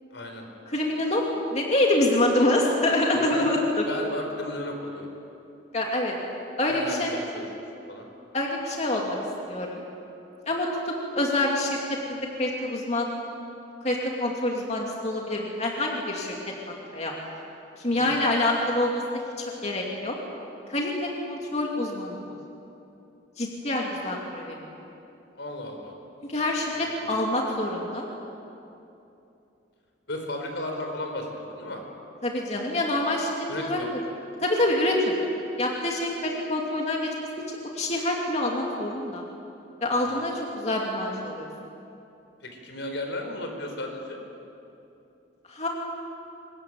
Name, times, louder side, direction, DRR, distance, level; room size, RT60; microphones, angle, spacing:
voice 1, 0.1-0.4 3.1-3.4 3.9-5.1 6.7-7.5 7.9-8.1 17.9-18.3 25.3-25.9 26.8-27.2 30.1-31.8 33.5-33.9 40.0-40.2 42.4-44.2, left 1 dB, 75° left, 3 dB, 4.4 m, -35 dB
voice 2, 0.7-1.2 1.5-3.9 5.7-6.2 6.6-7.1 8.3-9.2 9.5-9.8 10.5-13.1 13.8-17.1 17.8-19.0 19.4-20.2 20.7-22.4 23.4-24.6 26.3-28.1 32.2-33.8 34.4-35.1 35.6-37.1 37.7-39.2 39.8-41.5 45.5-45.7, left 1 dB, 35° left, -1 dB, 2.7 m, -26 dB
24.5 x 20.5 x 9.4 m, 2.8 s
head